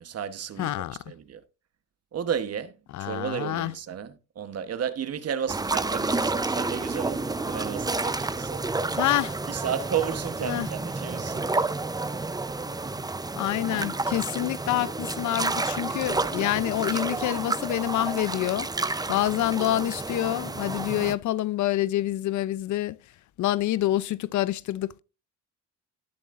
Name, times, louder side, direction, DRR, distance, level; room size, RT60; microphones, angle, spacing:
voice 1, 0.0-0.7 1.1-1.4 2.1-2.7 3.0-8.7 9.5-11.5, right 8 dB, 55° right, 1.2 m, -33 dB
voice 2, 0.6-1.0 2.9-3.7 9.0-9.4 10.4-10.7 13.4-18.7 19.1-23.0 23.4-25.0, left 14 dB, 70° left, 0.6 m, -27 dB
sound 1, 5.5-21.1, right 3 dB, 15° right, 0.7 m, -30 dB
18.5 x 7.1 x 2.5 m
cardioid pair, 90°, 30 cm